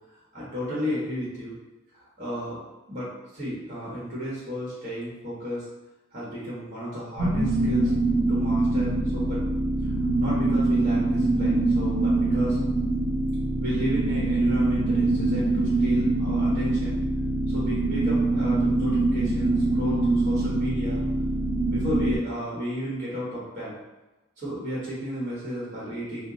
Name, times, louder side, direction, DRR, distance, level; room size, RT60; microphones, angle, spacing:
voice 1, 0.3-1.6 1.9-2.6 2.9-5.7 6.1-7.9 8.3-9.4 9.8-12.6 13.6-17.0 17.5-21.0 21.7-23.7 24.4-26.3, equal, 40° right, -8 dB, 1.1 m, -33 dB
sound 1, 7.2-22.2, right 2 dB, 90° right, 0.6 m, -24 dB
2.9 x 2.2 x 3.8 m, 1.1 s
head